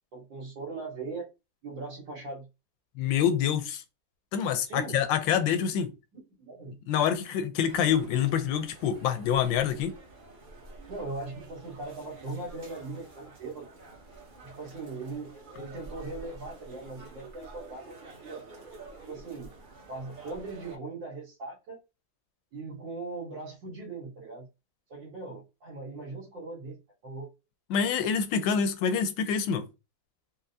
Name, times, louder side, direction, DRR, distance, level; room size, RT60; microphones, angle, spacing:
voice 1, 0.1-1.3 1.6-2.5 4.7-5.0 5.5-5.6 6.1-6.8 10.9-13.7 14.4-18.4 19.1-19.5 19.9-21.8 22.5-24.5 24.9-27.3, right 3 dB, 80° right, 1.8 m, -40 dB
voice 2, 3.0-3.8 4.3-5.9 6.9-10.0 27.7-29.7, left 8 dB, 85° left, 1.3 m, -26 dB
sound 1, 7.6-20.8, right 2 dB, 45° right, 0.6 m, -49 dB
4.3 x 2.0 x 2.6 m
omnidirectional pair, 2.0 m